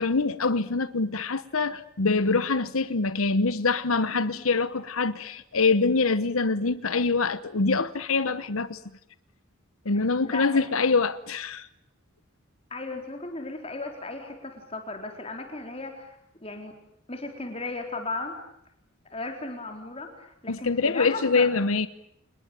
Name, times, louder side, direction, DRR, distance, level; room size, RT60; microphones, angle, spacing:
voice 1, 0.0-8.8 9.8-11.7 20.5-21.9, left 4 dB, 85° left, 1.1 m, -24 dB
voice 2, 4.1-4.4 9.9-10.6 12.7-16.8 17.1-18.4 19.1-21.5, left 2 dB, 30° left, 4.1 m, -36 dB
28.0 x 21.0 x 9.0 m
head